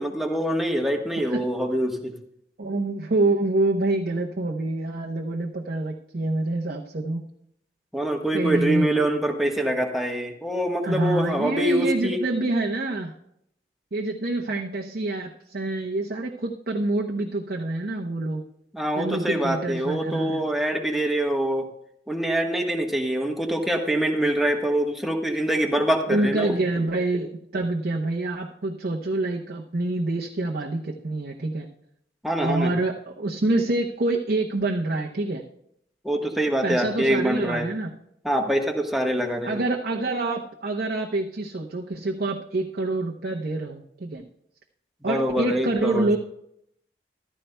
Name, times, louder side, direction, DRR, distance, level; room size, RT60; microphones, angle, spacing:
voice 1, 0.0-2.1 7.9-12.2 18.7-21.7 22.1-26.6 32.2-32.7 36.0-37.7 38.2-39.6 45.0-46.1, right 1 dB, ahead, 1 dB, 1.2 m, -25 dB
voice 2, 2.6-7.2 8.3-8.9 10.8-13.1 13.9-18.4 19.0-20.5 26.1-31.7 32.4-35.4 36.6-37.9 39.4-44.2 45.0-46.2, right 2 dB, 55° right, 0 dB, 0.8 m, -26 dB
14.5 x 12.5 x 2.2 m, 0.74 s
head